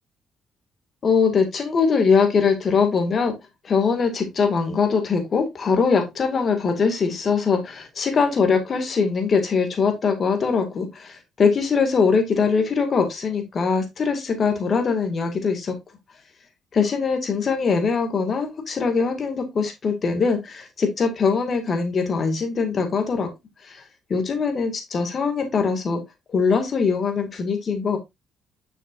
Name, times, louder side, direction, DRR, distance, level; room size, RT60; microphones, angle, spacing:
voice 1, 1.0-3.3 3.6-15.7 16.7-23.3 23.6-23.8 24.1-26.0 26.3-28.0, left 5 dB, 45° left, 5 dB, 2.0 m, -22 dB
6.7 x 6.2 x 2.5 m, 0.20 s
cardioid pair, 90°, 0 cm